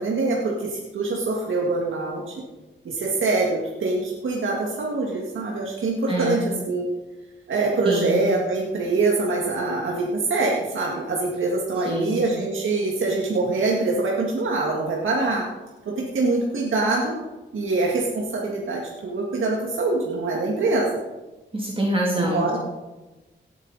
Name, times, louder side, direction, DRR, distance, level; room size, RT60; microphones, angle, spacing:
voice 1, 0.0-2.3 2.9-6.9 7.5-15.5 15.9-17.2 17.5-20.9 22.2-22.6, right 3 dB, 85° right, -2 dB, 1.9 m, -24 dB
voice 2, 6.1-6.4 7.8-8.2 11.9-12.2 21.5-22.6, right 1 dB, 25° right, -2 dB, 2.6 m, -25 dB
17.5 x 9.0 x 4.1 m, 1.1 s
wide cardioid pair, 100°, 20 cm